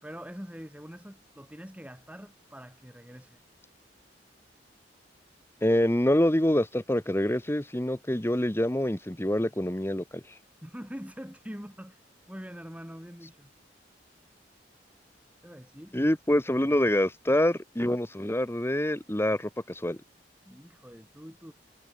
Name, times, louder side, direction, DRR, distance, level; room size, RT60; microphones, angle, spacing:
voice 1, 0.0-3.4 10.6-12.0 12.3-13.5 15.4-15.9 20.4-21.5, equal, 10° right, 4.8 m, -44 dB
voice 2, 5.6-10.2 15.9-20.0, left 1 dB, 15° left, 1.2 m, -26 dB
head